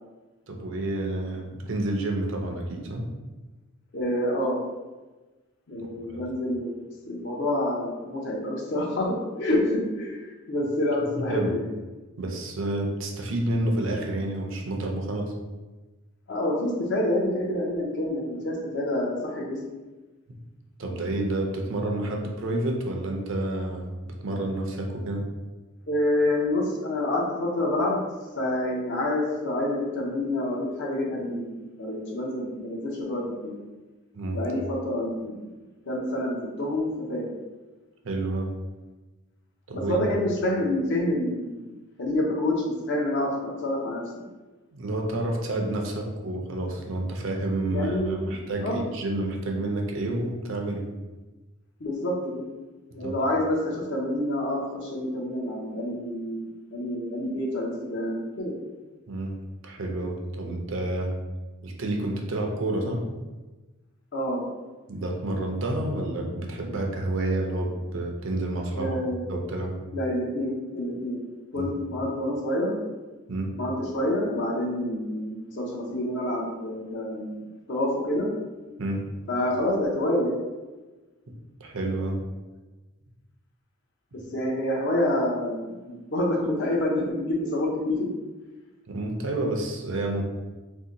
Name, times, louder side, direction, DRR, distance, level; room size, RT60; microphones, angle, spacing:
voice 1, 0.5-3.1 6.1-6.2 11.2-11.5 12.2-15.3 20.8-25.2 34.1-34.4 38.0-38.5 39.7-40.0 44.7-50.8 53.0-53.1 59.1-59.3 59.6-61.1 61.6-63.0 64.9-69.0 69.3-69.7 71.6-71.7 73.3-73.5 78.8-79.0 81.6-82.2 88.9-90.2, right 1 dB, 60° right, 1 dB, 0.5 m, -29 dB
voice 2, 3.9-4.6 5.7-11.7 16.3-19.6 25.9-28.0 28.4-33.6 34.3-35.4 35.9-37.3 39.7-41.6 42.0-44.2 47.7-48.8 51.8-52.4 52.9-58.6 64.1-64.4 68.7-69.5 69.9-71.2 71.5-72.8 73.6-77.4 77.7-78.3 79.3-80.3 84.3-88.1, left 1 dB, 55° left, -2 dB, 0.6 m, -27 dB
2.7 x 2.1 x 3.8 m, 1.2 s
head